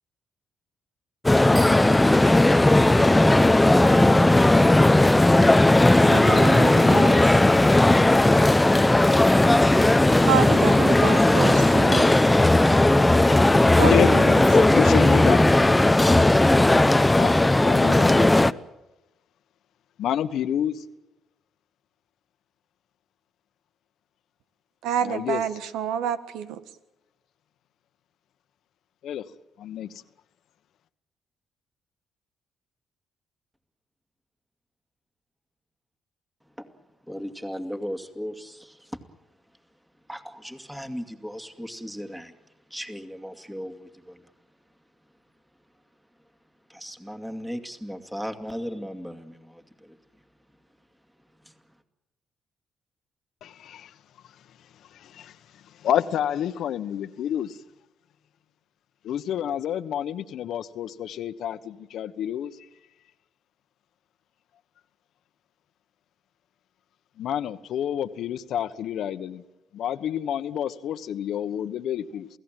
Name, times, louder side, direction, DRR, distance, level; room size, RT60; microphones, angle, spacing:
sound 1, 1.2-18.5, left 2 dB, 10° left, 0.8 m, -17 dB
voice 1, 6.0-7.3 10.3-12.1 13.8-14.4 24.8-26.6, right 9 dB, 90° right, 12 dB, 1.6 m, -28 dB
voice 2, 13.6-14.1 14.4-15.5 17.1-18.6 20.0-20.8 25.0-25.4 29.0-29.2 29.6-30.0 53.4-53.9 54.9-57.6 59.0-62.6 67.2-69.4 69.7-72.3, left 10 dB, 75° left, 12 dB, 1.2 m, -29 dB
voice 3, 37.0-39.0 40.1-44.3 46.7-50.0 51.4-51.6, equal, 5° right, 7 dB, 2.5 m, -37 dB
28.5 x 17.0 x 9.1 m, 0.97 s
cardioid pair, 90°, 0 cm